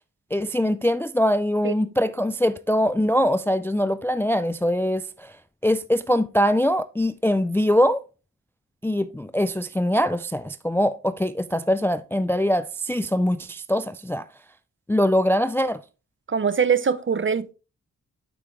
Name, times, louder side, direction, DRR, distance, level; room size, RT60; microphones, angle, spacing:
voice 1, 0.3-5.3 5.6-8.0 8.8-14.2 14.9-15.8, equal, 5° left, 0.3 m, -22 dB
voice 2, 16.3-17.5, right 6 dB, 35° right, 0.6 m, -22 dB
7.9 x 5.7 x 3.2 m
wide cardioid pair, 75°, 33 cm